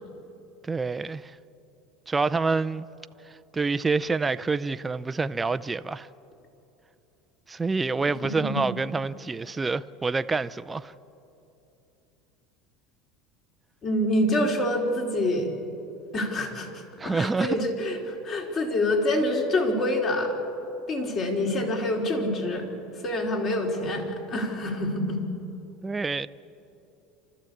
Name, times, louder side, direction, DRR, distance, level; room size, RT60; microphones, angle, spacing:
voice 1, 0.6-1.4 2.1-2.8 3.3-6.1 7.5-10.9 17.0-17.7 25.8-26.3, right 4 dB, 15° right, 0.5 m, -27 dB
voice 2, 13.8-15.5 16.1-16.7 17.0-20.4 20.9-22.7 23.0-25.2, left 1 dB, 40° left, 4.2 m, -26 dB
28.0 x 13.5 x 8.6 m
supercardioid pair, 130°, 0 cm